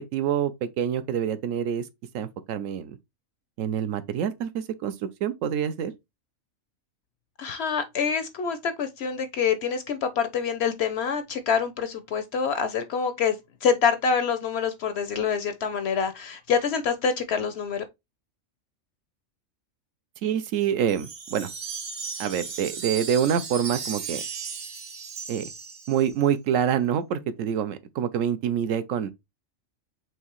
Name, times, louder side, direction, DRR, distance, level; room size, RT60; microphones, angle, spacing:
voice 1, 0.0-1.9 2.1-3.0 3.6-4.9 5.2-5.9 20.2-21.5 22.2-24.2 25.3-25.5 25.9-29.1, right 9 dB, 75° right, 0.9 m, -26 dB
voice 2, 7.4-17.8, left 6 dB, 65° left, 0.7 m, -26 dB
Wind chime, 20.9-26.3, right 6 dB, 45° right, 0.7 m, -36 dB
4.6 x 3.3 x 2.9 m
omnidirectional pair, 1.4 m